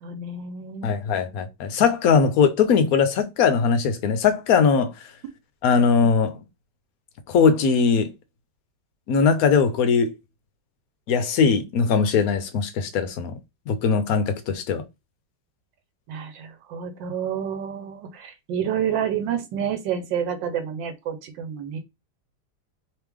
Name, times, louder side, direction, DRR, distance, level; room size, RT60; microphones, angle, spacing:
voice 1, 0.0-1.2 16.1-21.8, right 8 dB, 80° right, 1.4 m, -29 dB
voice 2, 0.8-4.9 5.6-6.4 7.3-8.1 9.1-10.1 11.1-13.4 13.7-14.8, left 5 dB, 70° left, 0.9 m, -20 dB
3.2 x 3.2 x 3.4 m
omnidirectional pair, 2.0 m